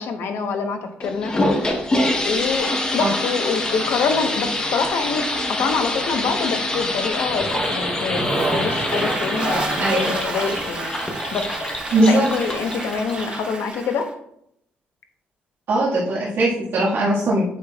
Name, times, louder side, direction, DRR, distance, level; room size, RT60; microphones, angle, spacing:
voice 1, 0.0-1.6 2.2-10.9 11.3-11.5 12.1-14.1, left 5 dB, 80° left, 5 dB, 1.0 m, -25 dB
sound 1, 1.0-13.5, left 1 dB, 20° left, 1.0 m, -25 dB
Toilet flush, 7.3-14.1, right 3 dB, 25° right, 0.9 m, -29 dB
voice 2, 11.9-12.3 15.7-17.4, right 2 dB, 70° right, -7 dB, 1.7 m, -19 dB
8.3 x 6.0 x 2.3 m, 0.74 s
cardioid pair, 150°, 4 cm